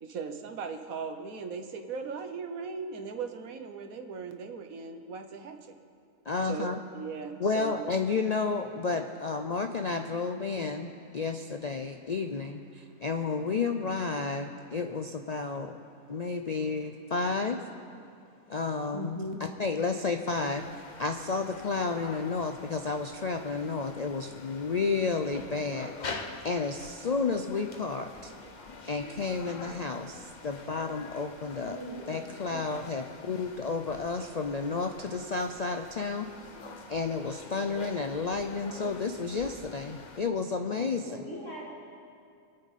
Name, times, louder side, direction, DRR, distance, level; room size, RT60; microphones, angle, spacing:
voice 1, 0.0-5.8 6.4-7.9 18.9-19.4 32.5-32.7 40.8-40.9, right 4 dB, 75° right, 6 dB, 1.5 m, -38 dB
voice 2, 6.3-6.8 7.4-15.8 16.1-17.6 18.5-19.2 19.6-20.6 21.0-26.1 26.4-28.3 28.9-31.8 32.1-36.3 36.9-41.1, left 4 dB, 80° left, 5 dB, 0.3 m, -31 dB
sound 1, 20.3-40.2, left 4 dB, 35° left, 0.8 m, -46 dB
voice 3, 31.7-32.2 41.0-41.6, right 1 dB, 15° left, -8 dB, 3.9 m, -41 dB
26.0 x 9.0 x 4.2 m, 2.4 s
omnidirectional pair, 1.5 m